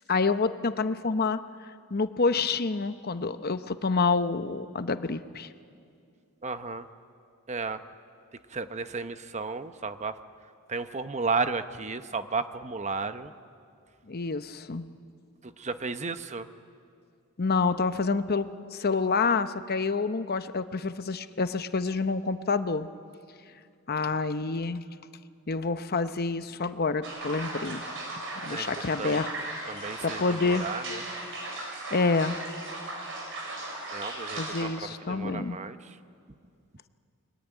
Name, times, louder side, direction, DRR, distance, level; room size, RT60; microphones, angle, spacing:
voice 1, 0.1-1.4 1.9-5.5 14.1-14.9 17.4-22.9 23.9-24.8 25.5-27.8 28.4-30.7 31.9-32.4 34.4-35.6, left 4 dB, 45° left, 11 dB, 0.8 m, -28 dB
voice 2, 6.4-6.8 7.5-7.8 8.5-10.1 10.7-13.3 15.6-16.5 28.5-28.7 29.0-29.2 29.7-31.0 33.9-34.7 35.1-35.8, right 4 dB, 30° right, 10 dB, 0.8 m, -33 dB
sound 1, 27.0-34.6, right 2 dB, 60° right, 5.8 m, -37 dB
29.5 x 22.0 x 9.1 m, 2.3 s
head